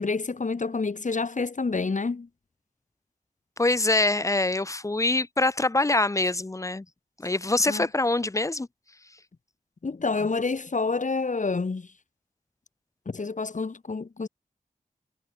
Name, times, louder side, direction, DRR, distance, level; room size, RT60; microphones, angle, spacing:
voice 1, 0.0-2.3 7.7-7.9 9.8-11.9 13.1-14.3, left 4 dB, 55° left, 1.8 m, -28 dB
voice 2, 3.6-6.8 7.2-8.7, left 2 dB, 20° left, 0.5 m, -24 dB
wide cardioid pair, 60°, 15 cm